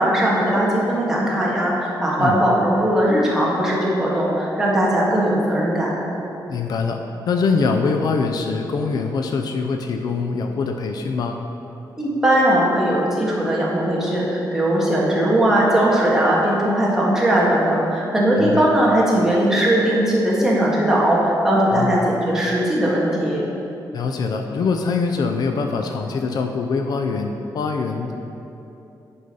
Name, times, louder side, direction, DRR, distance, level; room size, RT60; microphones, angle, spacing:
voice 1, 0.0-6.0 12.0-23.4, right 1 dB, 5° right, -6 dB, 1.7 m, -19 dB
voice 2, 6.5-11.4 18.4-18.7 21.7-22.0 23.9-28.2, left 4 dB, 60° left, 4 dB, 0.5 m, -23 dB
9.7 x 5.1 x 5.4 m, 2.9 s
wide cardioid pair, 170°, 8 cm